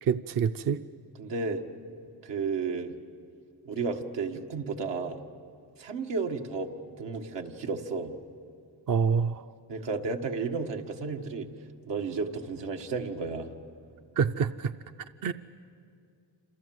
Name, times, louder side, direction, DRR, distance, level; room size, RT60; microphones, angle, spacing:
voice 1, 0.0-0.8 8.9-9.5 14.2-14.7 15.2-15.3, right 6 dB, 50° right, 10 dB, 0.6 m, -26 dB
voice 2, 1.2-1.6 2.2-2.9 3.7-5.2 5.8-6.7 7.0-8.1 9.7-11.5 11.9-13.5, right 4 dB, 85° right, 3 dB, 1.9 m, -32 dB
27.5 x 27.5 x 7.9 m, 2.4 s
cardioid pair, 100°, 41 cm